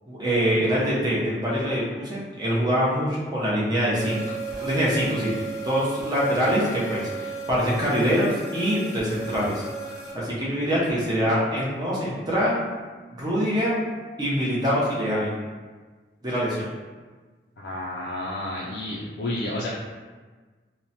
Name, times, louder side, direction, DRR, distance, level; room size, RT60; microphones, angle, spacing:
voice 1, 0.1-4.2 4.6-5.3 5.6-12.6 13.2-13.8 14.2-15.4 16.2-16.7, equal, 25° right, -6 dB, 0.6 m, -24 dB
sound 1, 4.0-10.1, right 4 dB, 40° right, 0.9 m, -35 dB
voice 2, 17.6-19.7, left 1 dB, 65° left, -5 dB, 0.3 m, -30 dB
3.0 x 2.1 x 2.7 m, 1.4 s
head